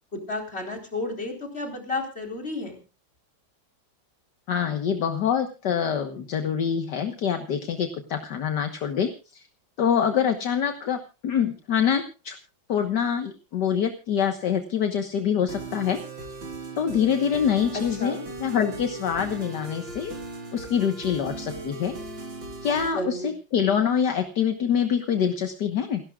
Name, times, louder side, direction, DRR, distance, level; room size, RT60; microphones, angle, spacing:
voice 1, 0.1-2.8 17.7-18.3 22.9-23.3, left 2 dB, 30° left, 3 dB, 4.4 m, -32 dB
voice 2, 4.5-9.4 9.8-12.4 12.7-16.0 16.8-20.2 20.5-22.0 22.6-26.0, left 8 dB, 65° left, 7 dB, 1.8 m, -25 dB
sound 1, 15.5-22.9, right 2 dB, 85° right, 4.2 m, -38 dB
28.5 x 12.0 x 2.4 m, 0.32 s
omnidirectional pair, 2.0 m